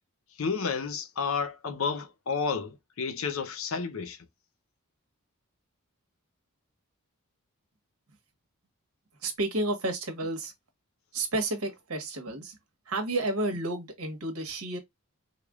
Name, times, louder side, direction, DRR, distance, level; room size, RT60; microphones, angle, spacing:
voice 1, 0.4-4.3, left 5 dB, 70° left, 0.7 m, -31 dB
voice 2, 9.2-10.5 11.1-12.6 12.9-14.8, right 2 dB, 80° right, 1.3 m, -31 dB
4.9 x 2.2 x 2.3 m
head